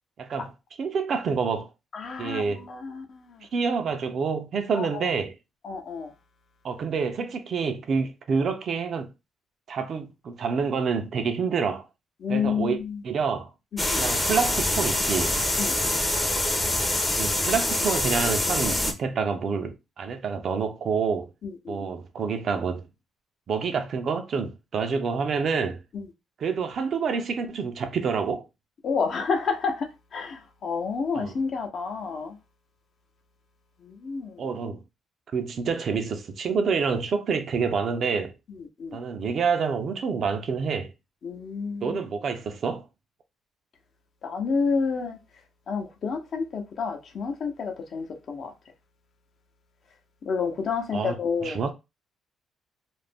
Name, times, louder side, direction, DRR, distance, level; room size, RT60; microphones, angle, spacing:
voice 1, 0.2-0.5 0.8-1.7 2.2-2.6 3.5-5.3 6.6-9.1 9.7-11.8 12.3-12.8 13.0-13.5 14.0-15.4 17.2-21.3 21.7-22.8 23.5-25.8 26.4-28.5 31.1-31.3 34.4-34.8 35.3-38.3 38.9-40.9 41.8-42.8 50.9-51.7, right 5 dB, 55° right, 0.5 m, -27 dB
voice 2, 1.9-3.4 4.7-5.1 5.6-6.1 12.2-13.0 13.8-14.0 15.6-15.8 21.4-21.8 25.9-26.0 28.8-32.4 33.8-34.4 38.6-39.0 41.2-42.0 44.2-45.2 45.7-48.5 50.3-51.6, left 5 dB, 60° left, 0.7 m, -29 dB
sound 1, 13.8-18.9, left 1 dB, 15° left, 0.6 m, -25 dB
2.5 x 2.1 x 3.4 m
cardioid pair, 90°, 0 cm